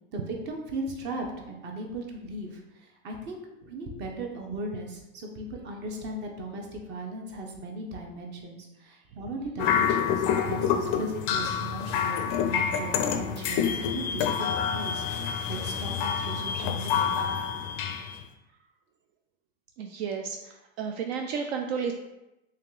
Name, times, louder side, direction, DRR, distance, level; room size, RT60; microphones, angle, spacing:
voice 1, 0.1-2.6 3.0-17.1, right 1 dB, 35° right, 1 dB, 0.8 m, -37 dB
sound 1, 9.6-18.2, left 7 dB, 40° left, 0.4 m, -27 dB
voice 2, 19.8-21.9, right 6 dB, 70° right, 3 dB, 0.5 m, -32 dB
3.3 x 2.8 x 3.7 m, 0.92 s
supercardioid pair, 130°, 32 cm